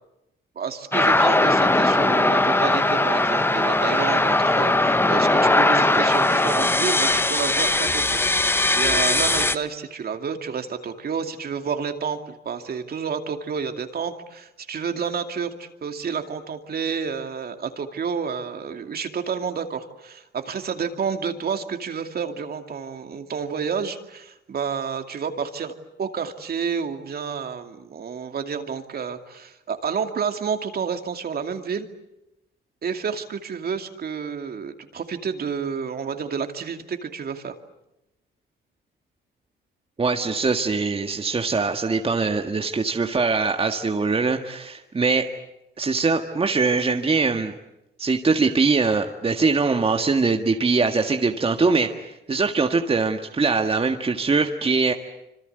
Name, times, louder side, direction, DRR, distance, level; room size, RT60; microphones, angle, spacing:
voice 1, 0.6-25.7 26.0-31.9 32.8-37.5, right 6 dB, 50° right, 6 dB, 2.5 m, -30 dB
sound 1, 0.9-9.6, left 2 dB, 10° left, 1.1 m, -20 dB
voice 2, 40.0-45.3 45.8-47.5 48.0-54.9, right 4 dB, 30° right, 4 dB, 1.7 m, -22 dB
26.5 x 26.0 x 8.1 m, 0.90 s
cardioid pair, 90°, 20 cm